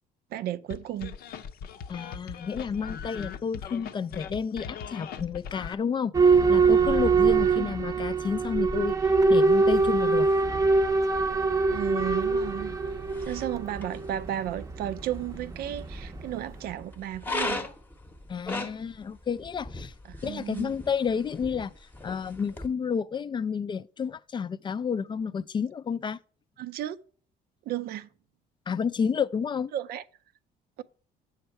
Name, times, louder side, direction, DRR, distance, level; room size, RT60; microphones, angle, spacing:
voice 1, 0.3-1.2 7.6-7.8 11.7-12.8 13.2-17.7 20.0-20.7 26.6-27.0 27.7-28.1 29.7-30.0, right 12 dB, 65° right, 0.4 m, -34 dB
sound 1, 0.7-5.7, left 7 dB, 65° left, 0.6 m, -39 dB
voice 2, 1.9-6.1 6.5-9.0 9.3-10.3 18.3-19.9 20.2-21.7 22.0-26.2 28.7-29.7, left 6 dB, 30° left, 0.3 m, -30 dB
Boat Water vehicle / Alarm, 6.1-16.8, right 4 dB, 20° right, 0.6 m, -24 dB
sound 2, 9.6-22.7, left 2 dB, 10° left, 0.8 m, -40 dB
7.9 x 6.4 x 4.5 m
cardioid pair, 110°, 17 cm